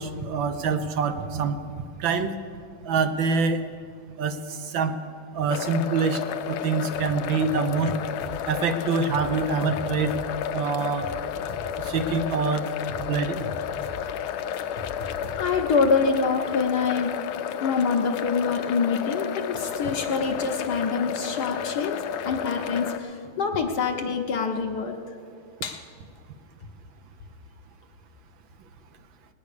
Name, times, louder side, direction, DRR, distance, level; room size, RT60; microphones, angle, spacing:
voice 1, 0.0-1.6 2.0-2.3 2.8-3.6 4.2-4.9 5.3-6.2 6.5-7.9 8.5-10.1 10.5-11.1 11.8-12.7 13.0-13.4 19.1-19.2, right 5 dB, 70° right, 8 dB, 1.5 m, -25 dB
sound 1, 5.5-23.0, left 9 dB, 80° left, 1.4 m, -32 dB
sound 2, 8.2-8.6 8.9-10.5 10.8-12.4 12.7-15.7, left 2 dB, 35° left, 1.0 m, -41 dB
voice 2, 15.4-17.2 17.6-22.0 22.2-25.2 25.6-25.8, left 5 dB, 60° left, 4 dB, 1.3 m, -25 dB
19.0 x 9.5 x 6.6 m, 2.2 s
omnidirectional pair, 2.3 m